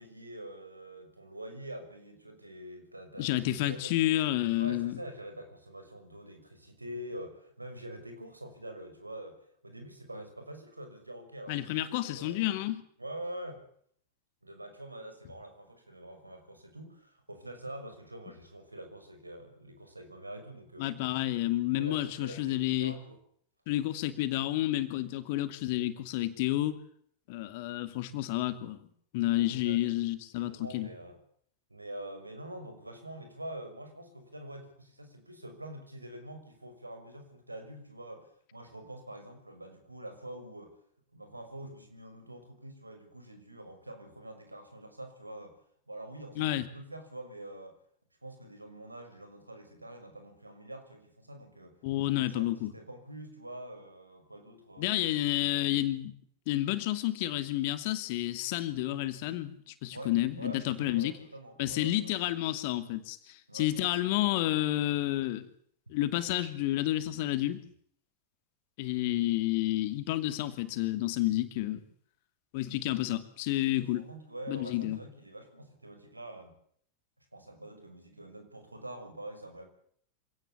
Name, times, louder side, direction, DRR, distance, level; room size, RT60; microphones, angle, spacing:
voice 1, 0.0-4.1 4.6-12.4 13.0-13.6 14.4-20.9 21.6-23.2 29.3-30.0 30.3-31.2 31.7-40.7 41.1-45.5 45.9-47.7 48.2-51.8 52.1-55.0 59.9-62.1 63.5-63.7 73.7-76.5 77.3-79.7, right 1 dB, 85° right, 7 dB, 6.1 m, -45 dB
voice 2, 3.2-5.0 11.5-12.8 20.8-23.0 23.7-26.8 27.3-28.8 29.1-30.9 46.4-46.7 51.8-52.7 54.8-56.1 56.5-61.1 61.6-65.5 65.9-67.6 68.8-71.8 72.5-74.0 74.5-75.0, left 15 dB, 50° left, 11 dB, 2.6 m, -30 dB
26.0 x 18.0 x 8.5 m, 0.63 s
figure-of-eight pair, 90°, 0 cm